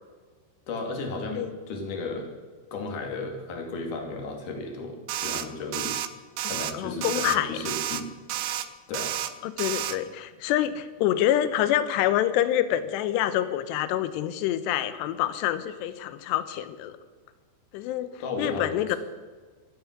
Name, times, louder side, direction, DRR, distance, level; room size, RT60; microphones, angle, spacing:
voice 1, 0.7-2.3 2.7-6.0 6.4-8.1 8.4-8.5 8.9-9.1 18.1-19.0, left 3 dB, 50° left, 2 dB, 3.3 m, -34 dB
sound 1, 5.1-5.5 5.7-6.1 6.4-6.7 7.0-7.4 7.7-8.0 8.3-8.7 8.9-9.3 9.6-10.0, right 12 dB, 85° right, 3.3 m, -30 dB
voice 2, 6.4-7.6 9.4-17.0 17.7-18.1 18.4-19.0, left 12 dB, 75° left, 12 dB, 2.7 m, -26 dB
25.0 x 9.5 x 5.9 m, 1.4 s
omnidirectional pair, 5.6 m